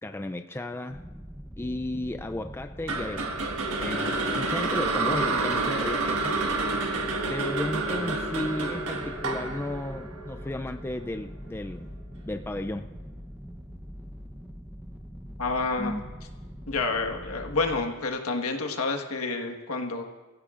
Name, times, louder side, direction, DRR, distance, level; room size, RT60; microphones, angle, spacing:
voice 1, 0.0-1.0 1.6-3.4 3.8-6.4 7.3-11.9 12.2-12.9 15.8-16.0, left 1 dB, 10° left, 7 dB, 0.3 m, -34 dB
sound 1, 0.9-17.9, equal, 5° right, 0.8 m, -43 dB
sound 2, 2.9-11.1, right 3 dB, 90° right, 1.5 m, -29 dB
voice 2, 15.4-15.9 16.7-20.0, left 3 dB, 90° left, 3 dB, 1.5 m, -29 dB
25.5 x 15.5 x 2.5 m, 1.3 s
head